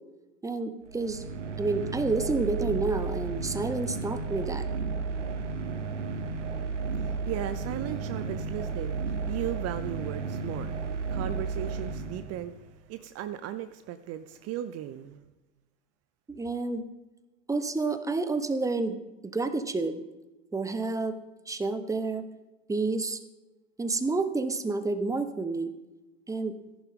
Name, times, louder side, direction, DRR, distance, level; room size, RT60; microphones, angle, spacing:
voice 1, 0.4-1.2 1.6-4.7 16.3-16.8 17.5-19.0 19.2-20.0 20.5-21.2 21.5-22.3 22.7-23.2 23.8-25.7 26.3-26.5, right 3 dB, 10° right, 1.0 m, -29 dB
sound 1, 0.9-12.7, right 4 dB, 90° right, 1.0 m, -33 dB
voice 2, 7.0-10.7 11.1-12.5 12.9-15.3, right 12 dB, 45° right, 0.6 m, -36 dB
14.5 x 11.0 x 3.7 m
hypercardioid pair, 80°, 35 cm